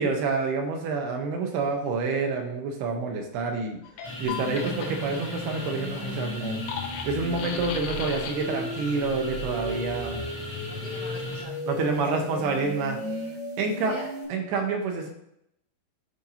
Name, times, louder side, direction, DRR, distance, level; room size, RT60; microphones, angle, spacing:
voice 1, 0.0-3.8 4.2-6.6 7.0-10.2 11.7-13.0 13.6-13.9 14.3-15.1, right 4 dB, 75° right, 2 dB, 2.8 m, -28 dB
sound 1, 3.8-8.6, left 7 dB, 85° left, 3.1 m, -38 dB
sound 2, 4.0-11.4, left 1 dB, 5° left, 0.7 m, -38 dB
sound 3, 4.2-14.2, left 1 dB, 45° right, 0.5 m, -35 dB
voice 2, 10.7-14.1, left 2 dB, 65° left, -4 dB, 1.8 m, -45 dB
11.5 x 4.4 x 2.7 m, 0.76 s
omnidirectional pair, 4.9 m